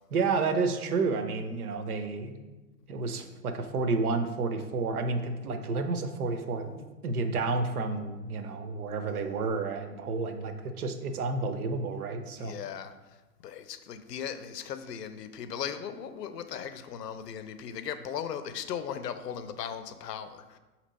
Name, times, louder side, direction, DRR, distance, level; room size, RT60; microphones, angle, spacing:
voice 1, 0.1-2.4 2.9-12.5, right 4 dB, 65° right, 8 dB, 0.6 m, -30 dB
voice 2, 12.4-12.9 13.4-20.6, left 8 dB, 80° left, 10 dB, 0.6 m, -37 dB
4.3 x 2.9 x 4.0 m, 1.1 s
hypercardioid pair, 165°, 47 cm